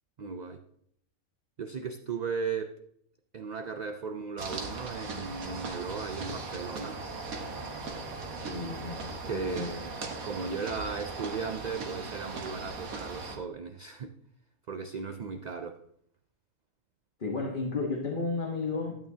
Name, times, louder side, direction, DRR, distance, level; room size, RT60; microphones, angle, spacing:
voice 1, 0.2-0.6 1.6-2.8 3.3-7.0 9.3-9.9 10.2-14.2 14.7-15.8, right 5 dB, 60° right, 6 dB, 0.4 m, -36 dB
sound 1, 4.4-13.4, right 3 dB, 80° right, 1.7 m, -38 dB
voice 2, 8.1-9.0 9.2-9.7 17.2-19.0, left 3 dB, 40° left, -1 dB, 1.3 m, -33 dB
12.5 x 8.9 x 2.8 m, 0.69 s
omnidirectional pair, 1.4 m